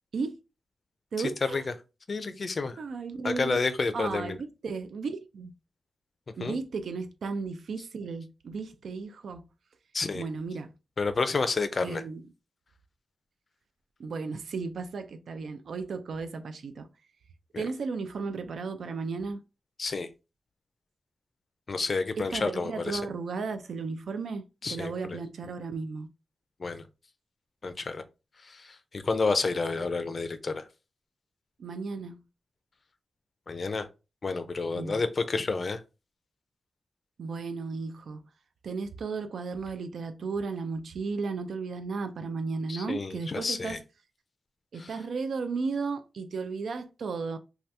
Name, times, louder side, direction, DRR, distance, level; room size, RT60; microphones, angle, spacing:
voice 1, 1.1-1.6 2.8-3.6 3.9-5.5 6.4-9.4 10.1-10.7 11.8-12.2 14.0-16.9 17.6-19.4 22.2-26.1 29.8-29.9 31.6-32.2 34.8-35.0 37.2-38.3 38.6-43.8 44.7-47.4, right 4 dB, 90° right, 0.3 m, -34 dB
voice 2, 2.1-2.8 3.2-4.4 6.4-6.6 9.9-10.2 11.0-12.0 17.5-17.6 19.8-20.1 21.7-23.0 24.6-25.2 26.6-26.8 27.6-28.0 28.4-30.7 33.5-33.9 34.2-35.8 42.7-43.8 44.8-44.9, left 4 dB, 40° left, 0.4 m, -30 dB
2.8 x 2.3 x 3.2 m
wide cardioid pair, 165°, 0 cm